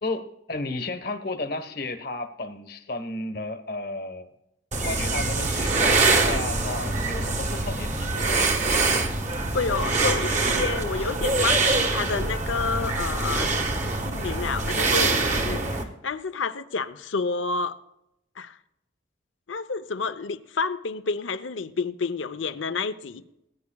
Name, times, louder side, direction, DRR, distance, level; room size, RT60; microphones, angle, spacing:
voice 1, 0.0-4.3 4.8-8.5, left 2 dB, 55° left, 8 dB, 1.2 m, -33 dB
sound 1, 4.7-15.8, right 3 dB, 40° right, 1.3 m, -24 dB
voice 2, 9.5-13.5 14.0-17.8 18.4-18.6 19.5-23.2, left 4 dB, 85° left, 11 dB, 0.7 m, -29 dB
19.5 x 9.6 x 2.3 m, 0.84 s
head